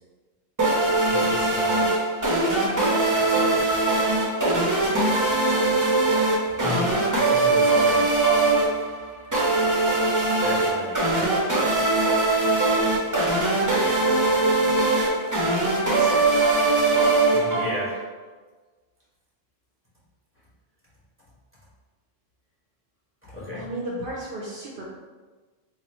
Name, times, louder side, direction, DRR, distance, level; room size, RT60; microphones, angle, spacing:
sound 1, 0.6-18.0, right 2 dB, 20° right, 0.5 m, -21 dB
voice 1, 1.0-2.1 3.1-3.7 5.1-5.3 6.6-8.7 10.4-11.8 17.3-18.0 23.2-24.0, left 1 dB, 10° left, -7 dB, 0.8 m, -35 dB
voice 2, 15.5-17.1 17.5-17.6 23.5-24.8, right 2 dB, 60° right, -4 dB, 0.7 m, -35 dB
3.0 x 2.4 x 4.1 m, 1.4 s
omnidirectional pair, 1.2 m